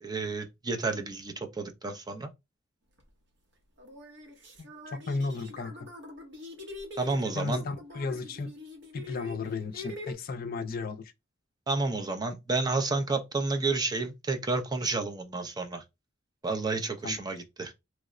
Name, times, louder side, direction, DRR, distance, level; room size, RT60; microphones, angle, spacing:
voice 1, 0.0-2.3 7.0-7.6 11.7-15.8 16.4-17.7, right 3 dB, 20° right, 0.4 m, -30 dB
sound 1, 3.0-3.1 3.8-10.1, left 2 dB, 65° right, 1.0 m, -44 dB
voice 2, 4.6-5.9 7.3-8.5 8.9-11.1 17.0-17.1, left 3 dB, 50° left, 0.4 m, -34 dB
3.1 x 2.0 x 3.6 m
head